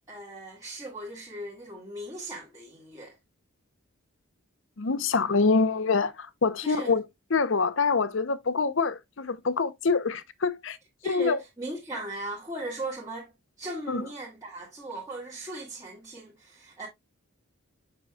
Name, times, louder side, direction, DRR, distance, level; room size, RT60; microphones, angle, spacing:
voice 1, 0.1-3.1 6.6-6.9 11.0-13.3 13.6-16.9, right 2 dB, 15° right, 1.6 m, -38 dB
voice 2, 4.8-7.0 7.3-10.8 11.1-11.4 13.9-14.1, left 4 dB, 60° left, 0.7 m, -25 dB
7.5 x 6.2 x 2.3 m
head